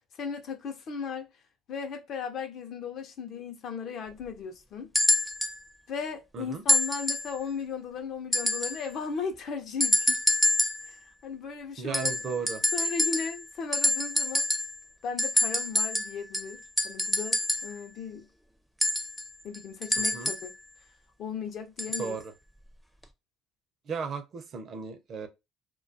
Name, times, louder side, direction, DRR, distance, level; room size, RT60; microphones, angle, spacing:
voice 1, 0.2-1.3 1.7-4.9 5.9-10.2 10.8-11.0 11.2-12.3 12.7-14.5 15.0-18.3 19.4-20.5 21.2-22.2, left 6 dB, 60° left, 0.5 m, -36 dB
sound 1, 4.9-5.6 6.7-7.4 8.3-8.9 9.8-10.9 11.9-13.5 13.7-14.8 15.2-17.8 18.8-20.5 21.8-22.1 23.0-23.1, left 1 dB, ahead, 0.4 m, -27 dB
voice 2, 11.8-12.6 20.0-20.3 22.0-22.3 23.9-25.3, right 5 dB, 50° right, 0.5 m, -35 dB
2.2 x 2.2 x 2.5 m
supercardioid pair, 80°, 0 cm